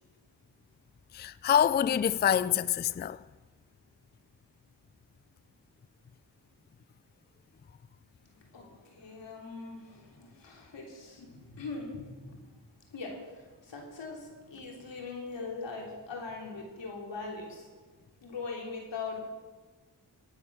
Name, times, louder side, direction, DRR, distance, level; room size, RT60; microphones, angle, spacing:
voice 1, 1.1-3.2, left 9 dB, 25° left, 0.4 m, -26 dB
voice 2, 8.5-12.4 12.9-17.7 18.2-19.2, left 4 dB, 85° left, 3.3 m, -41 dB
17.0 x 9.0 x 6.1 m
cardioid pair, 55°, 42 cm